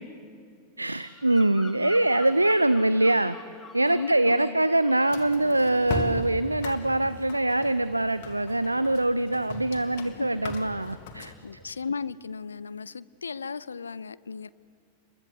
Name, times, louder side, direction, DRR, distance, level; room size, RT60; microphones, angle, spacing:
voice 1, 0.8-3.4 3.7-11.7, right 1 dB, 85° right, 15 dB, 0.6 m, -24 dB
Bird vocalization bird call bird song, 1.0-4.5 4.8-5.2, left 4 dB, 10° left, 2.9 m, -47 dB
voice 2, 3.9-4.6 10.2-10.3 11.4-14.5, left 5 dB, 75° left, 19 dB, 0.7 m, -35 dB
sound 1, 5.1-11.4, left 4 dB, 50° left, 2.5 m, -38 dB
29.5 x 23.0 x 8.5 m, 2.4 s
figure-of-eight pair, 90°, 0 cm